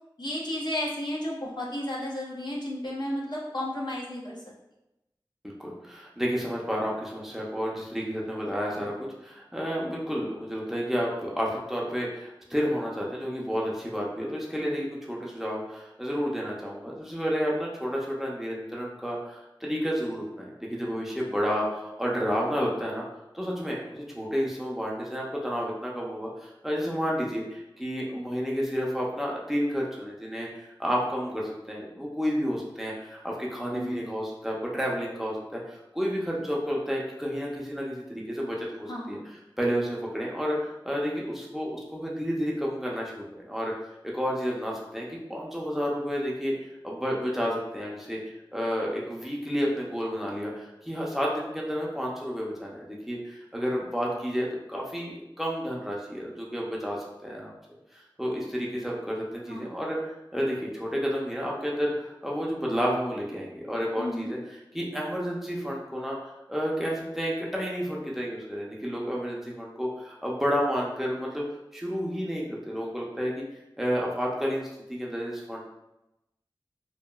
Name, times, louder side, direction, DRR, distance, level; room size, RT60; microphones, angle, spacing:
voice 1, 0.2-4.4 33.7-34.0 38.9-39.3 59.5-59.8 64.0-64.4, left 1 dB, 55° left, -4 dB, 0.6 m, -33 dB
voice 2, 5.6-23.0 23.3-39.2 39.6-43.7 44.0-48.2 48.5-57.5 57.9-64.4 64.7-71.4 71.7-73.4 73.8-74.6 74.9-75.6, equal, 5° right, -3 dB, 0.5 m, -31 dB
2.9 x 2.3 x 2.2 m, 0.92 s
wide cardioid pair, 50°, 9 cm